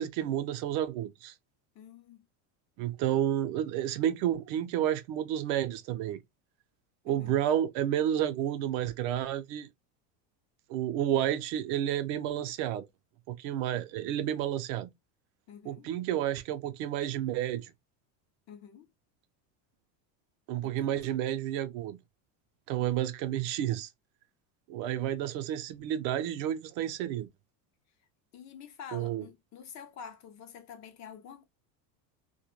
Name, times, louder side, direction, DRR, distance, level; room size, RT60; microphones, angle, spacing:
voice 1, 0.0-1.3 2.8-6.2 7.1-9.7 10.7-12.9 13.3-14.9 15.7-17.7 20.5-22.0 22.7-23.9 24.7-27.3 28.9-29.2, right 11 dB, 60° right, 0.6 m, -31 dB
voice 2, 1.8-2.2 7.1-7.4 15.5-15.9 18.5-18.9 20.6-21.0 28.3-31.4, left 7 dB, 35° left, 0.4 m, -48 dB
2.2 x 2.1 x 3.0 m
supercardioid pair, 120°, 49 cm